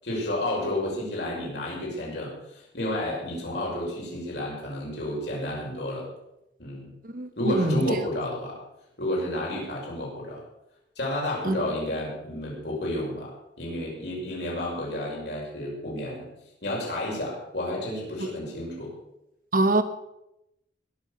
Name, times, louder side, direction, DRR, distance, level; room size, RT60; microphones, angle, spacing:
voice 1, 0.0-6.1 6.6-6.9 7.4-8.6 9.0-10.4 11.0-13.3 13.6-16.3 16.6-18.9, left 1 dB, 65° left, -3 dB, 5.9 m, -31 dB
voice 2, 7.0-7.8 11.4-11.6 19.5-19.8, right 2 dB, 50° right, 10 dB, 1.2 m, -24 dB
20.5 x 7.1 x 6.9 m, 0.87 s
head